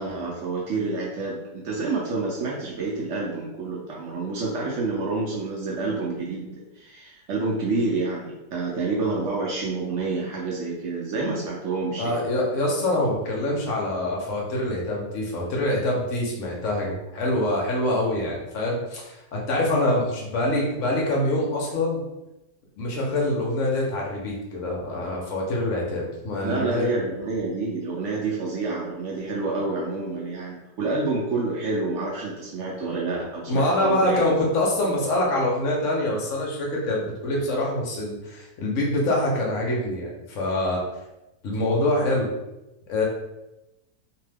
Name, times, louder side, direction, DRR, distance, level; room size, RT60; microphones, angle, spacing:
voice 1, 0.0-12.2 26.4-34.3, right 3 dB, 80° right, -4 dB, 0.6 m, -28 dB
voice 2, 12.0-22.0 22.8-26.9 33.5-40.9 41.4-42.3 42.9-43.0, left 1 dB, 60° left, -2 dB, 0.9 m, -25 dB
2.7 x 2.2 x 3.3 m, 0.96 s
omnidirectional pair, 1.8 m